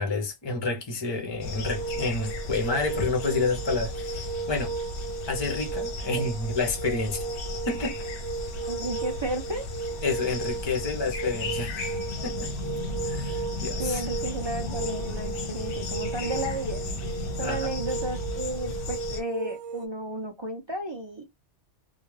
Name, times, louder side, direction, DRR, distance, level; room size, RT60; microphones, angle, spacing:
voice 1, 0.0-4.7 5.3-7.3 7.7-7.9 10.0-11.8 12.2-12.5 13.1-14.0 17.4-17.7, left 3 dB, 35° left, 0.4 m, -29 dB
sound 1, 1.4-19.2, left 2 dB, 60° left, 0.7 m, -35 dB
sound 2, 1.6-19.9, right 5 dB, 80° right, 0.8 m, -36 dB
voice 2, 8.7-9.7 13.8-16.8 17.4-21.2, right 1 dB, 45° right, 0.3 m, -33 dB
2.3 x 2.1 x 3.1 m
omnidirectional pair, 1.2 m